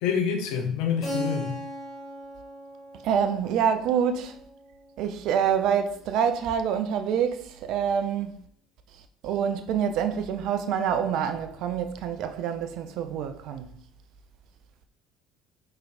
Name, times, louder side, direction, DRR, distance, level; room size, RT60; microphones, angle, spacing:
voice 1, 0.0-1.5, left 7 dB, 60° left, 0.5 m, -27 dB
Keyboard (musical), 1.0-5.6, equal, 20° left, 1.3 m, -38 dB
voice 2, 3.0-4.4 5.0-8.4 9.2-13.7, right 8 dB, 55° right, 0.3 m, -26 dB
4.0 x 3.0 x 2.4 m
figure-of-eight pair, 55°, 0 cm